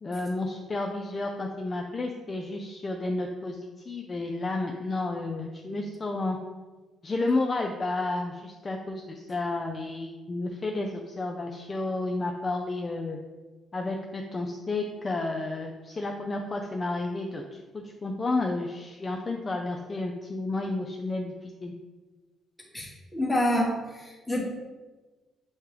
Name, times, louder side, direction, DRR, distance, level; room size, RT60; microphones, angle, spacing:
voice 1, 0.0-3.6 3.9-6.4 7.0-13.2 13.7-21.7, left 2 dB, 30° left, 2 dB, 0.4 m, -31 dB
voice 2, 22.7-24.4, left 1 dB, 10° left, -2 dB, 1.1 m, -27 dB
6.3 x 2.2 x 3.2 m, 1.3 s
cardioid pair, 90°, 0 cm